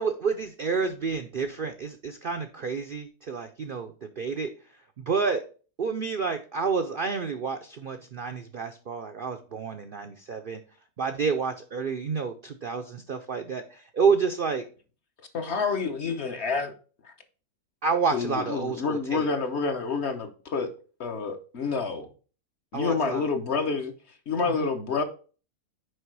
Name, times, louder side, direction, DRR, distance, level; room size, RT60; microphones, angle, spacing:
voice 1, 0.0-4.5 5.0-5.4 5.8-10.6 11.0-14.6 17.8-19.3 22.7-23.3 24.5-24.7, right 5 dB, 60° right, 0.5 m, -29 dB
voice 2, 15.3-16.7 17.0-17.1 18.1-20.7 21.0-22.1 22.7-23.9 24.3-25.0, left 4 dB, 50° left, 1.1 m, -28 dB
6.5 x 4.9 x 4.6 m
omnidirectional pair, 1.6 m